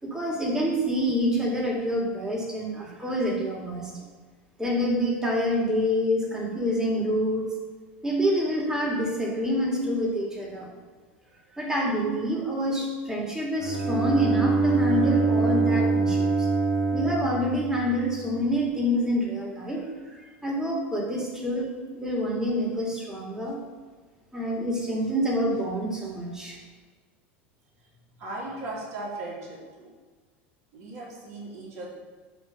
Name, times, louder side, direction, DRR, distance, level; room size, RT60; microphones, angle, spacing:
voice 1, 0.0-4.0 4.6-7.5 8.0-10.7 11.5-16.5 16.9-19.8 20.4-23.6 24.3-26.6, equal, 10° right, -2 dB, 2.1 m, -27 dB
Bowed string instrument, 13.6-18.4, right 3 dB, 80° right, 1.8 m, -24 dB
voice 2, 28.2-29.9 30.7-31.9, right 2 dB, 50° right, -4 dB, 2.5 m, -37 dB
8.7 x 3.1 x 6.1 m, 1.4 s
hypercardioid pair, 100°, 7 cm